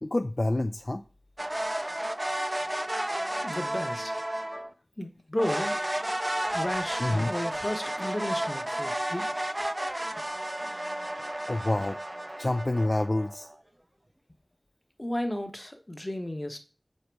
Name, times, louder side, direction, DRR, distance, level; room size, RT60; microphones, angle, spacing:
voice 1, 0.0-1.0 4.5-4.7 5.4-5.6 7.0-7.3 11.5-12.0 12.4-13.5, left 1 dB, 45° left, 0.4 m, -28 dB
sound 1, 1.4-4.7 5.4-13.5, right 1 dB, 25° right, 0.5 m, -32 dB
voice 2, 3.3-4.1 5.0-5.8 6.5-9.3 15.0-16.6, left 1 dB, 30° left, 0.9 m, -33 dB
6.4 x 4.1 x 4.7 m
wide cardioid pair, 50°, 0 cm